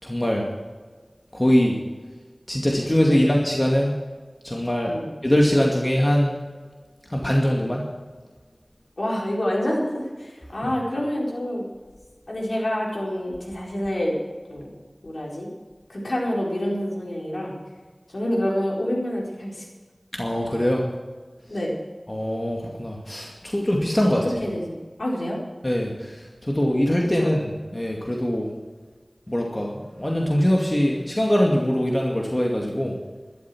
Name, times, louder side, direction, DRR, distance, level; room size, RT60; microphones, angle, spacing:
voice 1, 0.0-0.5 1.3-1.8 2.5-4.0 4.4-4.9 5.2-6.3 7.1-7.9 10.6-10.7 20.2-20.8 22.1-24.2 25.6-27.5 27.7-28.5 29.3-32.9, equal, 30° left, -1 dB, 2.3 m, -22 dB
voice 2, 9.0-11.6 12.3-14.2 14.5-14.7 15.0-15.5 15.9-17.5 18.1-19.7 21.5-21.7 24.2-25.4 27.1-27.3, equal, 80° left, -3 dB, 4.3 m, -27 dB
13.0 x 12.0 x 6.2 m, 1.4 s
wide cardioid pair, 40°, 0 cm